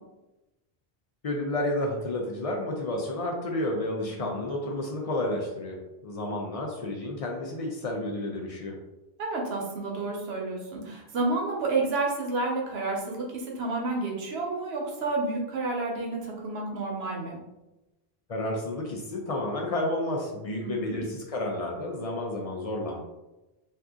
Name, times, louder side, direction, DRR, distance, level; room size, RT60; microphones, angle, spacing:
voice 1, 1.2-8.8 18.3-23.0, left 1 dB, 50° left, 0 dB, 0.4 m, -31 dB
voice 2, 9.2-17.4 20.6-21.1, right 3 dB, 80° right, -1 dB, 1.0 m, -30 dB
2.7 x 2.4 x 3.5 m, 1.0 s
omnidirectional pair, 1.1 m